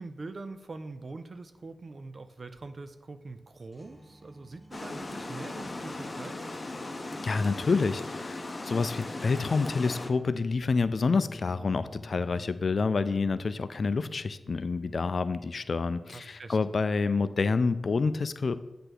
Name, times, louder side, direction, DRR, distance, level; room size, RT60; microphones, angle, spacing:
voice 1, 0.0-6.4 16.1-16.6, right 3 dB, 55° right, 9 dB, 0.5 m, -43 dB
sound 1, 2.5-2.8 3.3-3.4 3.7-8.3, right 1 dB, 20° right, 1.4 m, -55 dB
Water, 4.7-10.1, left 2 dB, 40° left, 0.8 m, -38 dB
voice 2, 7.2-18.6, left 4 dB, 60° left, 13 dB, 0.4 m, -28 dB
Bass guitar, 10.8-17.1, left 1 dB, 5° left, 0.7 m, -50 dB
7.8 x 3.4 x 6.1 m, 1.0 s
cardioid pair, 45°, 0 cm